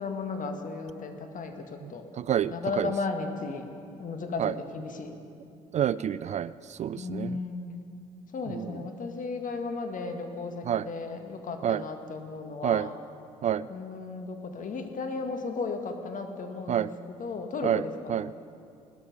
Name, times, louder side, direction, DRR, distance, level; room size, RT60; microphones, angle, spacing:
voice 1, 0.0-2.0 2.5-3.7 4.0-5.1 6.9-7.7 8.3-13.0 13.7-16.9 17.2-18.2, left 4 dB, 45° left, 5 dB, 1.8 m, -35 dB
voice 2, 2.2-2.9 4.4-4.5 5.7-7.4 8.5-8.7 10.7-10.9 11.6-11.8 12.6-12.9 13.4-13.7 16.7-16.9 17.6-17.8 18.1-18.3, right 10 dB, 40° right, 17 dB, 0.4 m, -28 dB
18.5 x 12.5 x 5.4 m, 2.5 s
hypercardioid pair, 55°, 19 cm